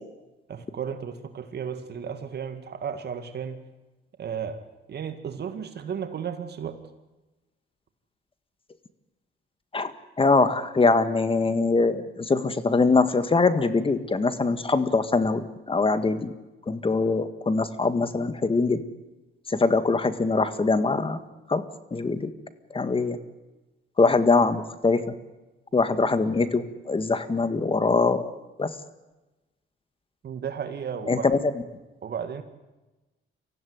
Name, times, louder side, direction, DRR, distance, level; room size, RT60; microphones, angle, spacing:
voice 1, 0.5-3.6 4.2-4.6 4.9-6.8 30.2-31.3 32.0-32.4, right 7 dB, 55° right, 8 dB, 2.0 m, -34 dB
voice 2, 10.2-16.3 16.7-18.8 19.5-21.2 21.5-21.6 21.9-22.3 22.7-23.2 24.0-25.1 25.7-28.3 28.6-28.7 31.1-31.4, left 3 dB, 25° left, 11 dB, 1.8 m, -23 dB
24.5 x 15.5 x 9.6 m, 1.1 s
cardioid pair, 90°, 20 cm